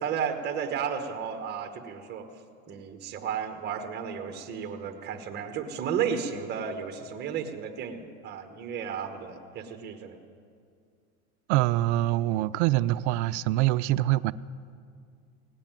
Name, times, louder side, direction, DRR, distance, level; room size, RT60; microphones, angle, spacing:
voice 1, 0.0-2.3 2.7-10.2, right 7 dB, 25° right, 5 dB, 1.1 m, -33 dB
voice 2, 11.5-14.3, right 16 dB, 55° right, 13 dB, 0.5 m, -24 dB
17.0 x 8.4 x 8.9 m, 2.3 s
supercardioid pair, 140°, 43 cm